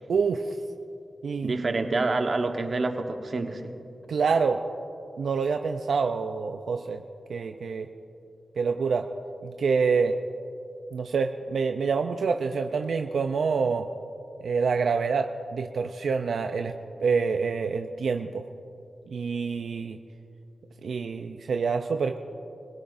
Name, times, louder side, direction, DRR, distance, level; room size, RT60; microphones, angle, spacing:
voice 1, 0.1-0.5 1.2-1.5 4.1-4.6 5.2-7.0 7.3-7.9 8.6-9.1 9.4-10.1 10.9-13.9 14.4-16.7 17.0-18.4 19.1-20.0 20.8-22.2, right 5 dB, 85° right, 5 dB, 0.5 m, -26 dB
voice 2, 1.4-3.7, right 3 dB, 50° right, 5 dB, 1.2 m, -27 dB
26.5 x 17.0 x 2.6 m, 2.7 s
wide cardioid pair, 85°, 0 cm